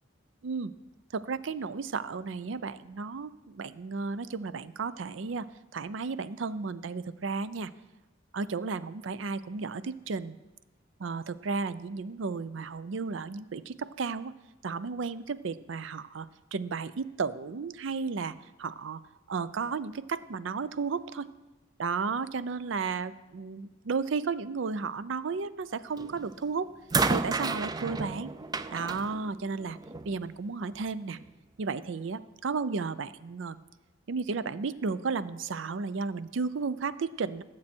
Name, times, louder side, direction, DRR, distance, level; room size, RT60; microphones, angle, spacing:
voice 1, 1.1-7.7 8.3-10.4 11.0-14.3 14.6-19.0 19.3-21.3 21.8-26.7 27.1-28.3 28.7-29.8 30.0-31.2 31.6-33.6 34.1-37.4, right 4 dB, 70° right, 15 dB, 0.5 m, -33 dB
sound 1, 26.0-26.3 26.9-30.2 31.2-31.3, right 4 dB, 20° right, 0.4 m, -31 dB
18.5 x 7.6 x 4.4 m, 1.1 s
head